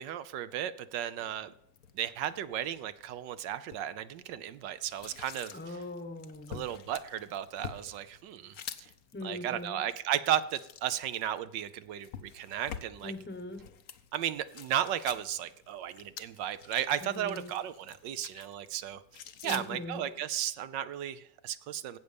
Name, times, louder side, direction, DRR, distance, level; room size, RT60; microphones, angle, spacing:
voice 1, 0.0-1.5 1.9-5.8 6.5-8.9 9.2-13.1 14.1-19.0 19.4-22.0, right 11 dB, 75° right, 13 dB, 1.3 m, -34 dB
sound 1, 1.2-20.2, left 8 dB, 60° left, 1.1 m, -49 dB
voice 2, 5.5-6.6 9.1-9.8 13.0-13.7 17.0-17.5 19.4-20.0, left 2 dB, 10° left, 8 dB, 0.9 m, -41 dB
16.5 x 6.6 x 5.2 m, 0.79 s
omnidirectional pair, 2.0 m